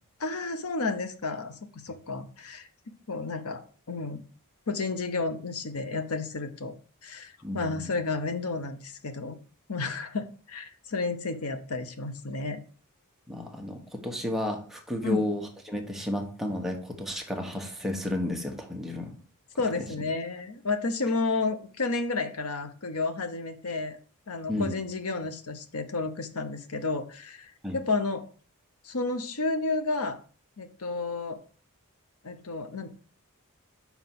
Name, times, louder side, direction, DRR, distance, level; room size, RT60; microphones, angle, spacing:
voice 1, 0.2-1.6 1.8-2.7 3.1-4.2 4.7-6.8 7.0-9.4 9.7-12.6 15.0-15.3 19.6-24.0 24.3-28.2 28.8-30.2 30.6-31.4 32.2-32.9, left 3 dB, 75° left, 9 dB, 0.9 m, -31 dB
voice 2, 7.4-7.9 13.3-19.1 19.8-19.9 24.5-24.7 27.6-27.8, left 1 dB, ahead, 1 dB, 1.2 m, -32 dB
5.9 x 4.3 x 5.9 m, 0.41 s
head